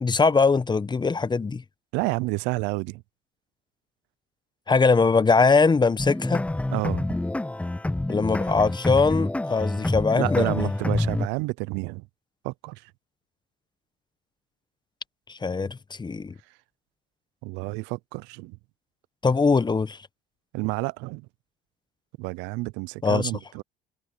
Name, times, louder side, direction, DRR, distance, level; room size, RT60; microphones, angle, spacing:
voice 1, 0.0-1.6 4.7-6.4 8.1-10.7 15.3-16.3 19.2-20.0 23.0-23.3, left 4 dB, 25° left, 1.0 m, -21 dB
voice 2, 1.9-3.0 6.7-7.0 10.1-12.0 12.4-12.8 17.4-18.6 20.5-21.3 22.2-23.6, right 25 dB, 80° right, 0.6 m, -30 dB
sound 1, 6.0-11.3, left 1 dB, 5° left, 0.6 m, -27 dB
supercardioid pair, 70°, 18 cm